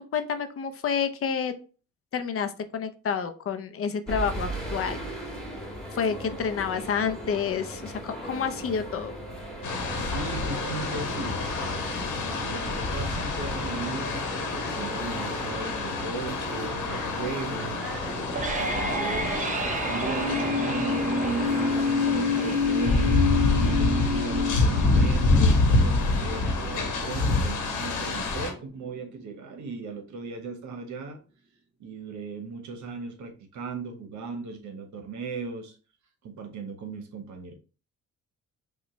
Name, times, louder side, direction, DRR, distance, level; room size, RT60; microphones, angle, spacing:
voice 1, 0.1-1.5 2.1-5.0 5.9-9.1, left 6 dB, 50° left, 0.6 m, -29 dB
sound 1, 4.1-21.8, right 1 dB, ahead, 1.5 m, -37 dB
sound 2, 9.6-28.5, left 3 dB, 85° left, 1.3 m, -27 dB
voice 2, 9.9-11.4 12.0-18.0 18.5-31.2 31.8-35.8 36.2-37.5, right 4 dB, 70° right, 1.0 m, -38 dB
sound 3, 18.1-29.1, left 2 dB, 25° right, 0.7 m, -29 dB
5.1 x 2.3 x 3.0 m
cardioid pair, 90°, 30 cm